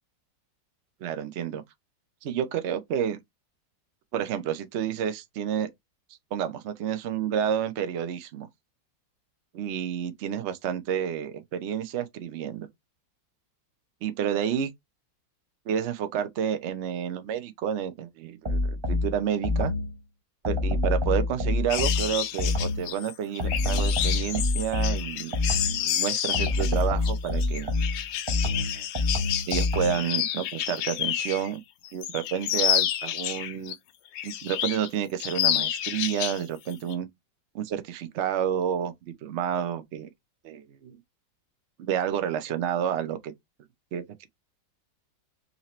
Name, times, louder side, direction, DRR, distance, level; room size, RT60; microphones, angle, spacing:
voice 1, 1.0-1.6 2.2-3.2 4.1-5.7 6.3-8.5 9.5-12.7 14.0-14.7 15.7-19.7 20.4-27.7 28.4-28.9 29.5-31.6 31.9-33.7 34.2-37.1 37.5-38.9 39.2-40.1 40.4-41.0 41.8-43.3 43.9-44.3, right 9 dB, 60° right, 0.7 m, -30 dB
U Got Style Huh., 18.4-20.0 20.4-22.9 23.4-25.9 26.3-30.1, left 2 dB, 20° right, 0.7 m, -27 dB
sound 1, 21.7-31.5 31.9-33.7 34.1-34.9 35.2-36.4 36.7-36.9, left 11 dB, 85° left, 1.3 m, -29 dB
4.1 x 2.8 x 3.0 m
omnidirectional pair, 1.9 m